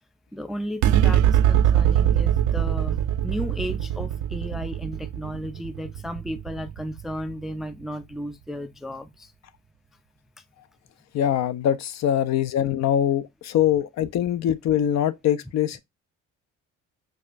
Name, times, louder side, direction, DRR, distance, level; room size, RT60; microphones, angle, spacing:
voice 1, 0.3-9.3, equal, ahead, 0.3 m, -34 dB
sound 1, 0.8-7.5, right 10 dB, 75° right, 0.5 m, -22 dB
voice 2, 11.1-15.8, left 10 dB, 65° left, 0.5 m, -23 dB
4.9 x 2.3 x 2.4 m
cardioid pair, 90°, 30 cm